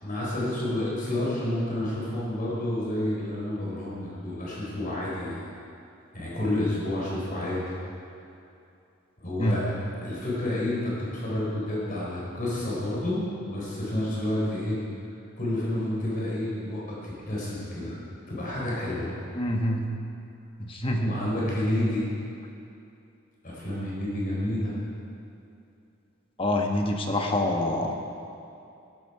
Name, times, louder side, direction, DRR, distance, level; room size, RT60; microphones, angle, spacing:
voice 1, 0.0-5.4 6.1-7.6 9.2-9.7 10.0-14.8 15.4-18.0 18.3-19.1 21.0-22.0 23.4-24.7, left 1 dB, 40° left, -6 dB, 4.0 m, -29 dB
voice 2, 19.3-19.8 20.6-21.1 26.4-28.0, left 1 dB, 25° left, 2 dB, 1.3 m, -26 dB
15.5 x 12.5 x 4.8 m, 2.6 s
head